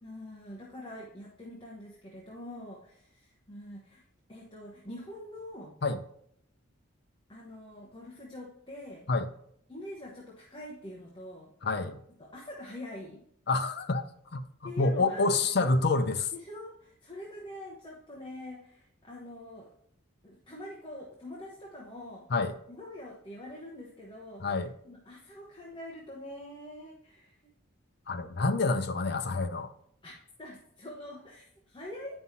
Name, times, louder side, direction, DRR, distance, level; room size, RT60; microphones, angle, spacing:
voice 1, 0.0-4.0 4.3-5.8 7.3-9.1 9.7-11.5 12.2-13.2 14.6-15.5 16.3-19.7 20.2-22.3 22.7-27.5 30.0-30.1 30.4-32.2, left 1 dB, 20° left, 1.0 m, -45 dB
voice 2, 11.6-12.0 13.5-14.4 14.8-16.3 22.3-22.5 24.4-24.7 28.1-29.7, left 3 dB, 50° left, 0.5 m, -27 dB
9.3 x 5.5 x 2.8 m
head